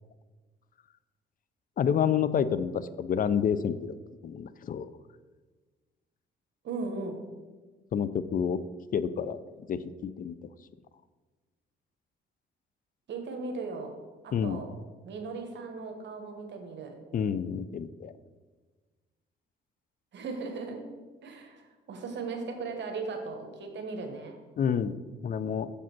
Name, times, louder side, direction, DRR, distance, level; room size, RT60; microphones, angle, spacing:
voice 1, 1.8-4.0 4.2-4.9 7.9-8.6 8.9-9.4 9.7-10.5 14.3-14.6 17.1-18.1 24.6-24.9 25.2-25.7, left 7 dB, 45° left, 15 dB, 0.4 m, -29 dB
voice 2, 6.6-7.2 13.1-13.9 14.2-14.7 15.0-16.9 20.1-20.9 21.2-21.6 21.9-24.4, right 4 dB, 65° right, 4 dB, 1.2 m, -37 dB
6.8 x 5.0 x 6.0 m, 1.3 s
cardioid pair, 90°, 20 cm